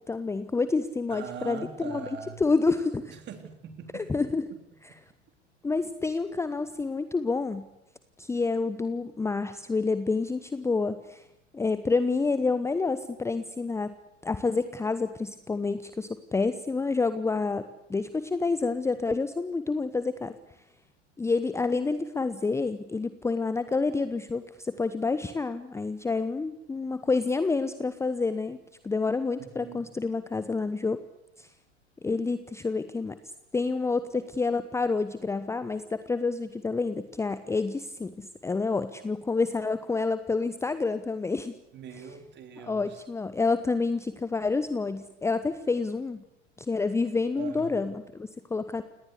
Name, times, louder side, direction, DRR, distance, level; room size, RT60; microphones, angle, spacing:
voice 1, 0.1-2.1 2.4-3.1 3.9-4.4 5.6-7.7 8.2-11.2 11.5-13.9 14.2-20.3 21.2-28.6 28.8-31.0 31.4-31.5 32.0-33.2 33.5-41.5 42.6-46.2 46.7-48.8, left 4 dB, 10° left, 12 dB, 0.9 m, -28 dB
voice 2, 1.1-2.4 3.1-4.2 29.4-29.8 41.7-43.0 47.4-47.8, right 7 dB, 30° right, 7 dB, 3.7 m, -41 dB
29.0 x 19.0 x 8.3 m, 0.87 s
figure-of-eight pair, 85°, 35 cm